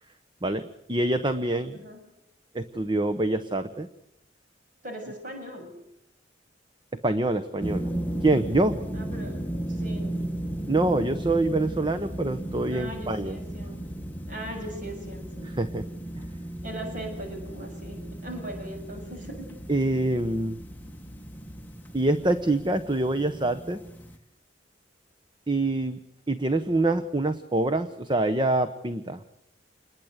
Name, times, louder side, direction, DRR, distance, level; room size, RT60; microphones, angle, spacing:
voice 1, 0.4-1.8 2.5-3.9 7.0-7.9 8.2-8.8 10.7-13.4 15.6-15.8 19.7-20.6 21.9-23.8 25.5-26.0 26.3-29.2, right 2 dB, 25° right, 11 dB, 1.0 m, -25 dB
voice 2, 1.7-2.0 4.8-5.7 8.9-9.4 9.7-10.2 12.7-13.8 14.3-15.5 16.6-19.5, right 1 dB, 45° right, 3 dB, 7.1 m, -39 dB
sound 1, 7.6-24.2, right 1 dB, 10° left, 1.5 m, -35 dB
28.0 x 21.5 x 8.2 m, 0.78 s
head